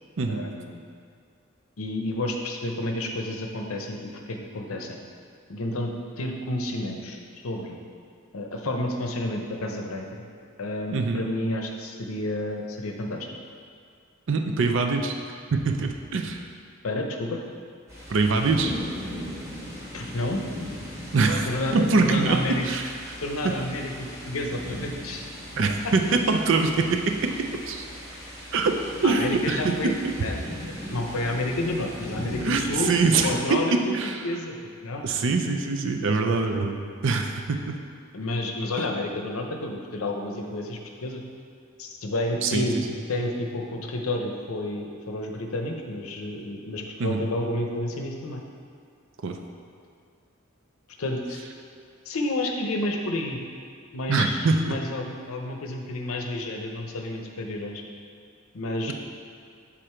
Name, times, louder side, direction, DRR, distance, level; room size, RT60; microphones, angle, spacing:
voice 1, 0.3-0.9 1.8-5.0 5.5-7.8 8.3-10.2 10.6-13.3 16.8-17.4 19.9-20.4 21.4-22.7 23.2-25.2 25.8-25.9 29.0-29.9 30.2-30.4 30.9-33.0 33.2-33.9 34.2-35.1 38.1-41.2 41.8-42.8 43.1-48.4 51.0-51.4 52.1-53.4 53.9-57.8 58.5-58.9, left 1 dB, 90° left, 2 dB, 0.7 m, -30 dB
voice 2, 10.9-11.2 14.3-15.1 15.5-16.4 18.1-18.7 21.1-21.5 21.7-22.9 25.6-27.8 28.5-28.7 29.0-29.9 32.4-32.6 32.9-34.2 35.0-36.8 37.0-37.8 42.4-42.6 47.0-47.2 49.2-49.4 54.1-54.8, right 4 dB, 60° right, 4 dB, 0.5 m, -23 dB
sound 1, 17.9-33.4, equal, 15° right, 1.4 m, -38 dB
sound 2, 42.7-44.4, left 1 dB, 30° left, 0.6 m, -45 dB
6.6 x 3.7 x 4.4 m, 2.3 s
head